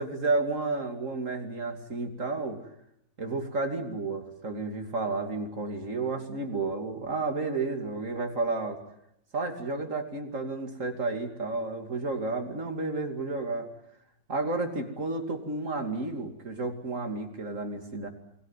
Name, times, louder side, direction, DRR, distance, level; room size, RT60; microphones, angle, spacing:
voice 1, 0.0-2.6 3.2-8.8 9.3-13.7 14.3-18.1, right 3 dB, 45° right, 5 dB, 3.1 m, -31 dB
28.0 x 21.5 x 7.4 m, 0.78 s
omnidirectional pair, 2.0 m